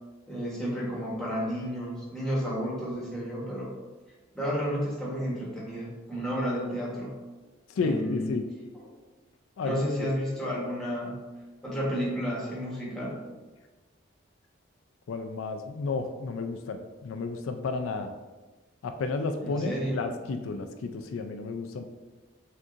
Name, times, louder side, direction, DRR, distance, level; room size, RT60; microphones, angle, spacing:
voice 1, 0.3-3.7 4.3-7.1 7.8-8.3 8.7-8.9 9.6-11.2 11.6-13.2 19.4-20.1, equal, 5° left, -6 dB, 1.0 m, -31 dB
voice 2, 7.8-8.5 9.6-10.1 15.1-18.1 18.8-21.9, left 4 dB, 85° left, 6 dB, 0.4 m, -32 dB
6.1 x 2.7 x 2.5 m, 1.2 s
head